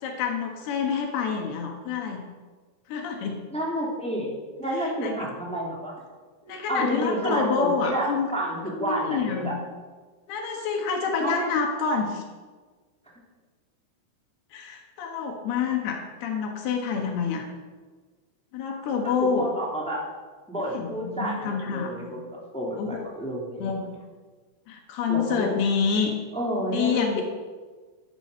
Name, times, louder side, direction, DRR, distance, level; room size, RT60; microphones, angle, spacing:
voice 1, 0.0-2.2 2.9-3.4 4.7-5.2 6.4-8.3 8.8-9.6 10.3-12.2 14.5-17.5 18.5-19.5 20.7-22.2 22.8-23.0 23.6-23.8 24.7-26.1 26.7-27.2, left 5 dB, 85° left, 2 dB, 3.6 m, -27 dB
voice 2, 3.5-4.3 4.6-5.9 6.7-9.5 11.2-11.5 19.4-20.0 20.5-24.0 25.1-25.5 26.3-27.2, equal, ahead, -4 dB, 2.8 m, -30 dB
13.0 x 12.0 x 5.7 m, 1.4 s
omnidirectional pair, 4.4 m